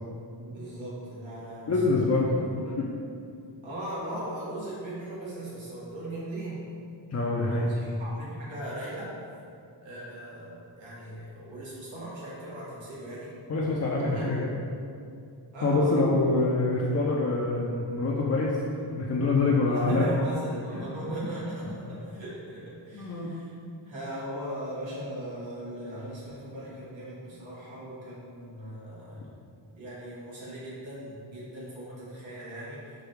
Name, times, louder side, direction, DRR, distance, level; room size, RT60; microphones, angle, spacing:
voice 1, 0.4-2.3 2.5-2.8 3.6-6.6 7.6-9.1 9.8-13.3 14.1-14.3 15.5-16.0 19.7-23.5 23.8-29.2 29.8-32.9, right 1 dB, 90° right, -8 dB, 1.3 m, -39 dB
voice 2, 1.7-2.2 2.8-2.9 7.1-7.7 13.5-14.5 15.6-20.0 20.7-20.8 21.7-21.8 22.9-23.3, left 3 dB, 35° left, -4 dB, 0.4 m, -25 dB
4.7 x 2.3 x 3.2 m, 2.5 s
cardioid pair, 75°, 45 cm